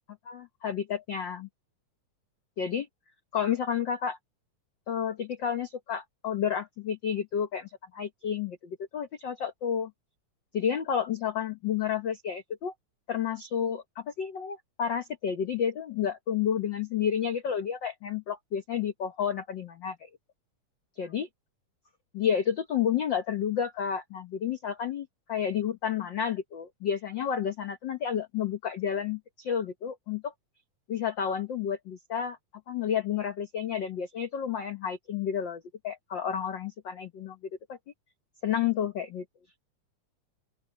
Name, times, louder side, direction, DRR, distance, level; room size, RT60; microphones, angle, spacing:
voice 1, 0.2-1.5 2.6-2.9 3.3-4.2 4.9-9.9 10.5-12.7 13.1-20.1 21.0-21.3 22.1-30.3 30.9-32.4 32.7-37.4 37.7-37.8 38.4-39.2, left 8 dB, 85° left, 1.0 m, -31 dB
open air
omnidirectional pair, 3.7 m